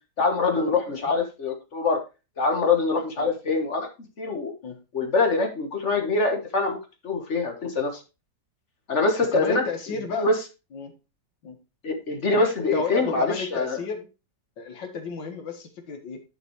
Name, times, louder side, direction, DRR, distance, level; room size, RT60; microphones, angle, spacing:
voice 1, 0.2-2.0 2.4-3.9 4.2-4.5 4.9-6.8 7.0-8.0 8.9-9.6 10.2-10.4 11.8-13.8, left 3 dB, 40° left, 4 dB, 1.6 m, -24 dB
voice 2, 9.2-10.3 10.7-10.9 11.4-11.6 12.7-14.1 14.6-16.2, left 4 dB, 80° left, 6 dB, 2.1 m, -32 dB
10.5 x 6.0 x 3.1 m, 0.28 s
omnidirectional pair, 1.9 m